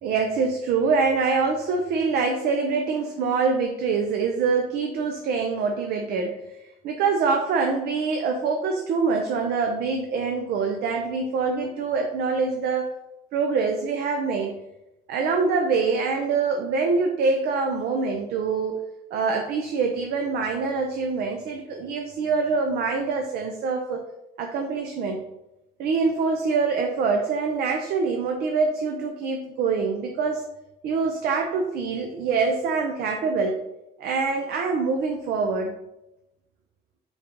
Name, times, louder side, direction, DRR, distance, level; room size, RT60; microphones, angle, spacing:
voice 1, 0.0-6.4 6.8-12.9 13.3-14.6 15.1-24.0 24.4-25.2 25.8-30.4 30.8-33.6 34.0-35.7, right 4 dB, 70° right, 3 dB, 0.5 m, -25 dB
3.9 x 3.5 x 2.9 m, 0.90 s
cardioid pair, 110°, 17 cm